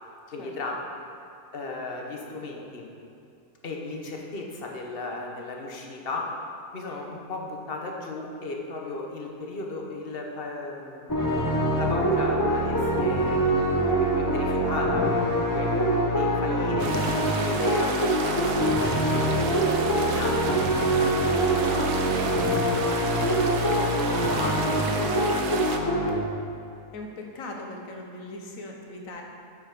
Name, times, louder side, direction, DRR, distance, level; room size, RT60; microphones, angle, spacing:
voice 1, 0.3-0.9 1.5-2.9 3.6-6.4 6.7-15.8 16.1-19.8 20.1-22.5 22.8-25.1 25.4-25.8, left 3 dB, 40° left, 0 dB, 1.1 m, -36 dB
sound 1, 11.1-26.1, right 1 dB, 20° left, 0.6 m, -24 dB
sound 2, 16.8-25.8, right 5 dB, 80° right, 1.3 m, -32 dB
voice 2, 26.9-29.2, left 2 dB, 60° left, 1 dB, 1.4 m, -39 dB
8.3 x 5.6 x 6.1 m, 2.5 s
omnidirectional pair, 1.7 m